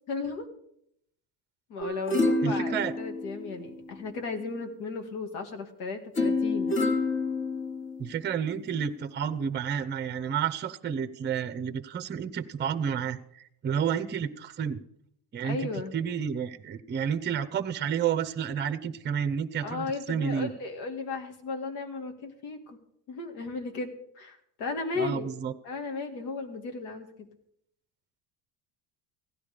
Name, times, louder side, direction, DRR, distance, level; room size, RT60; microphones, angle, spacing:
voice 1, 0.1-0.5 1.7-6.8 15.4-15.9 19.6-22.8 23.1-25.3 25.6-27.3, left 4 dB, 90° left, 5 dB, 2.2 m, -35 dB
sound 1, 1.8-4.1 6.2-8.2 8.7-8.8, left 2 dB, 25° left, 1.5 m, -28 dB
voice 2, 2.4-2.9 8.0-14.8 15.3-20.5 25.0-25.5, right 7 dB, 25° right, 10 dB, 0.7 m, -30 dB
16.0 x 10.5 x 5.1 m, 0.73 s
cardioid pair, 120°, 44 cm